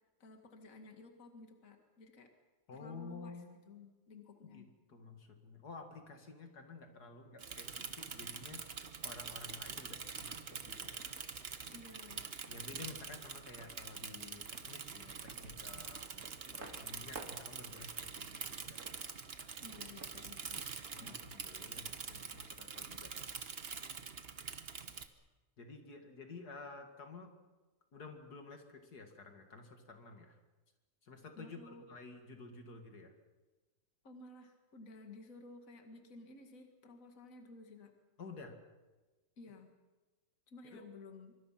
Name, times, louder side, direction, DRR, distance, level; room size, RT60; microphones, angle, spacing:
voice 1, 0.2-2.3 2.7-3.4 3.7-4.7 11.7-12.3 19.6-20.6 21.0-21.2 31.4-31.9 34.0-37.9 39.4-39.7 40.5-41.3, left 3 dB, 55° left, 4 dB, 2.3 m, -54 dB
voice 2, 2.7-3.6 4.5-11.1 12.5-18.8 20.9-23.4 25.6-27.3 27.9-30.4 31.0-31.6 31.9-33.1 38.2-38.6 40.6-40.9, left 3 dB, 75° left, 5 dB, 2.7 m, -52 dB
sound 1, 7.2-22.1, right 3 dB, 65° right, 2.9 m, -59 dB
Bicycle / Mechanisms, 7.4-25.1, right 5 dB, 40° right, 1.3 m, -45 dB
25.5 x 24.5 x 5.9 m, 1.2 s
omnidirectional pair, 1.7 m